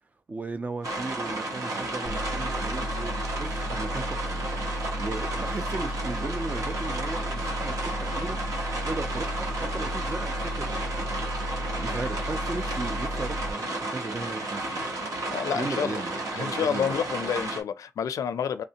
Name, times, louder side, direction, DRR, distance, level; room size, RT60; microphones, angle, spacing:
voice 1, 0.3-8.4 8.8-11.1 11.8-15.0 15.5-17.0, right 3 dB, 25° right, 0.4 m, -36 dB
sound 1, 0.8-17.6, right 2 dB, 80° right, 1.0 m, -32 dB
sound 2, 2.1-13.5, equal, 5° left, 1.3 m, -34 dB
voice 2, 15.3-16.0 16.3-18.6, left 8 dB, 90° left, 0.4 m, -29 dB
3.3 x 3.2 x 2.8 m
wide cardioid pair, 165°, 6 cm